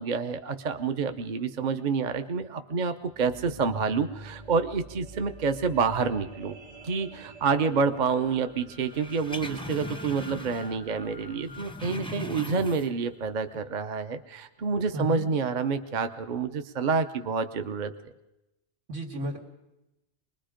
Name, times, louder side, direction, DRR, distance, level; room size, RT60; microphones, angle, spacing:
voice 1, 0.0-6.5 6.8-17.9, right 5 dB, 45° right, 8 dB, 0.8 m, -28 dB
sound 1, 3.0-13.4 14.0-14.1, equal, 60° right, 2.5 m, -47 dB
sound 2, 8.9-10.8 11.1-13.1 13.5-13.6, left 2 dB, 5° left, 0.6 m, -39 dB
voice 2, 14.9-15.3 18.9-19.4, equal, 80° right, 2 dB, 2.5 m, -33 dB
24.5 x 21.0 x 5.1 m, 0.94 s
omnidirectional pair, 1.2 m